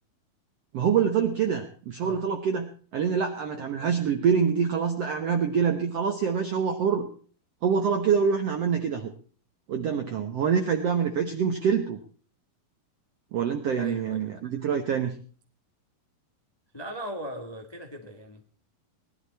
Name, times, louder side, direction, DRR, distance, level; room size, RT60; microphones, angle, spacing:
voice 1, 0.7-2.7 2.9-7.1 7.6-9.1 9.7-12.0 13.3-15.2, right 7 dB, 70° right, 5 dB, 1.5 m, -25 dB
voice 2, 13.7-14.2 16.7-18.4, right 1 dB, 15° left, 3 dB, 0.8 m, -38 dB
19.5 x 12.0 x 4.2 m, 0.42 s
omnidirectional pair, 4.4 m